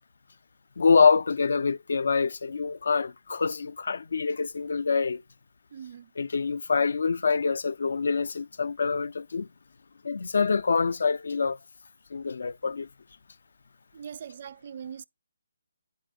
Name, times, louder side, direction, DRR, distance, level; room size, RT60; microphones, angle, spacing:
voice 1, 0.8-5.2 6.2-9.5 10.0-11.6 12.1-12.9, left 5 dB, 65° left, 0.5 m, -25 dB
voice 2, 5.7-6.1 13.9-15.0, right 8 dB, 40° right, 0.4 m, -41 dB
10.0 x 4.4 x 3.6 m
hypercardioid pair, 170°, 0 cm